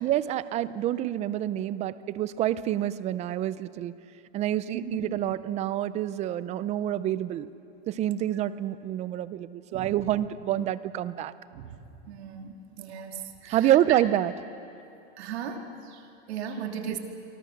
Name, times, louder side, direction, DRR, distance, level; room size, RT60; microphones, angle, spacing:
voice 1, 0.0-3.9 4.3-7.5 7.9-11.3 13.5-14.3 16.9-17.0, right 12 dB, 20° right, 16 dB, 0.5 m, -27 dB
voice 2, 12.1-14.0 15.2-16.0 16.3-17.0, right 8 dB, 75° right, 3 dB, 3.0 m, -37 dB
28.0 x 24.5 x 6.5 m, 2.7 s
supercardioid pair, 150°, 33 cm